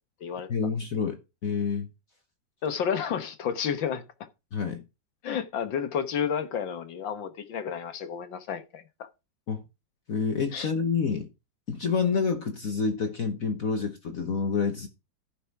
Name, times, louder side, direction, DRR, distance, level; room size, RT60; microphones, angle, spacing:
voice 1, 0.5-1.9 4.5-4.8 9.5-9.6 10.1-11.3 11.7-14.9, left 5 dB, 50° left, 1.4 m, -28 dB
voice 2, 2.6-4.0 5.2-9.1 10.5-10.7, left 7 dB, 75° left, 1.9 m, -31 dB
14.0 x 5.9 x 4.6 m
omnidirectional pair, 2.1 m